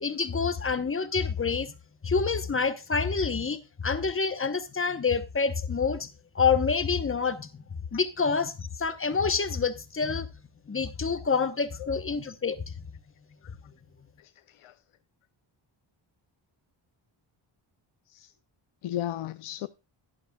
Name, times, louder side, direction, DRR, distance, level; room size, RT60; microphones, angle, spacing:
voice 1, 0.0-1.7 2.0-6.1 6.3-7.6 7.9-10.3 10.7-12.7, left 5 dB, 25° left, 1.0 m, -27 dB
voice 2, 18.8-19.7, left 12 dB, 90° left, 0.6 m, -35 dB
12.0 x 11.0 x 2.3 m
wide cardioid pair, 125°, 48 cm